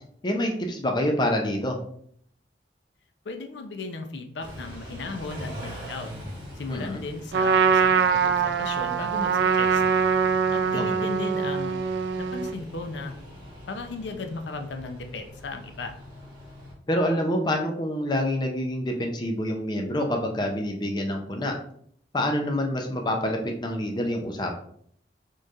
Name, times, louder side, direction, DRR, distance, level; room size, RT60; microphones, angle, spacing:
voice 1, 0.2-1.8 6.7-7.0 10.7-10.9 16.9-21.5 22.1-24.5, left 1 dB, 25° left, 2 dB, 0.4 m, -27 dB
voice 2, 3.3-6.1 6.6-9.8 10.5-11.8 12.2-13.2 13.7-15.9, left 3 dB, 85° left, 6 dB, 0.5 m, -36 dB
Car / Idling / Accelerating revving vroom, 4.4-16.7, equal, 25° right, 1.5 m, -42 dB
Trumpet, 7.3-12.6, right 6 dB, 75° right, 0.3 m, -23 dB
4.4 x 3.1 x 2.4 m, 0.64 s
head